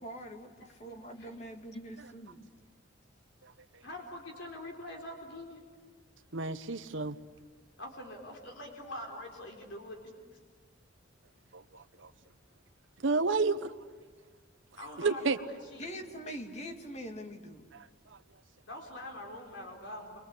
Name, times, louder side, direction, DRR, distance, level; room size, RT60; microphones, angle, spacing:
voice 1, 0.0-2.4 15.1-15.3 15.8-17.6, equal, 35° left, 5 dB, 2.1 m, -44 dB
voice 2, 0.6-1.3 1.7-1.8 3.8-5.6 7.8-10.0 14.7-15.9 18.7-20.2, left 1 dB, 70° left, 1 dB, 4.3 m, -44 dB
voice 3, 6.3-7.2 11.5-12.1 13.0-13.7 15.0-15.4 17.7-17.9, right 4 dB, 75° right, 8 dB, 1.0 m, -30 dB
28.5 x 24.5 x 8.4 m, 1.4 s
head